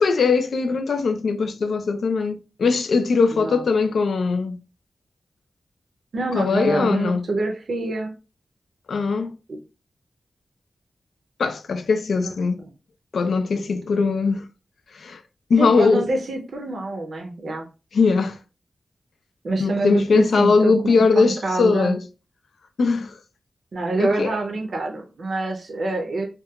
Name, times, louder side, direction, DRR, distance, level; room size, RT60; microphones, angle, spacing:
voice 1, 0.0-4.6 6.3-7.3 8.9-9.4 11.4-12.6 13.1-14.5 14.9-15.2 15.5-16.1 17.9-18.4 19.6-22.0 22.8-23.2 24.0-24.4, left 4 dB, 85° left, 0.3 m, -20 dB
voice 2, 3.3-3.6 6.1-8.1 9.5-9.6 12.2-12.3 12.6-12.7 15.6-17.6 19.4-22.0 23.7-26.3, right 2 dB, 65° right, 0.5 m, -26 dB
2.7 x 2.2 x 2.3 m
wide cardioid pair, 140°, 0 cm